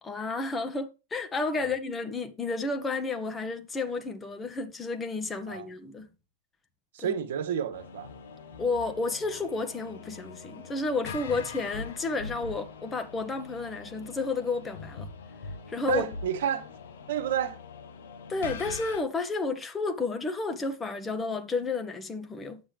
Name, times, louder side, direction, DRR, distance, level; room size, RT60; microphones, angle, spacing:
voice 1, 0.0-6.1 7.0-7.2 8.6-15.1 15.7-16.1 18.3-22.6, left 3 dB, 15° left, 1.3 m, -31 dB
voice 2, 6.9-8.1 15.9-16.7 17.1-17.6, right 9 dB, 60° right, 1.4 m, -30 dB
sound 1, 7.7-19.0, left 4 dB, 60° left, 1.5 m, -43 dB
9.7 x 8.7 x 3.4 m
figure-of-eight pair, 90°, 0 cm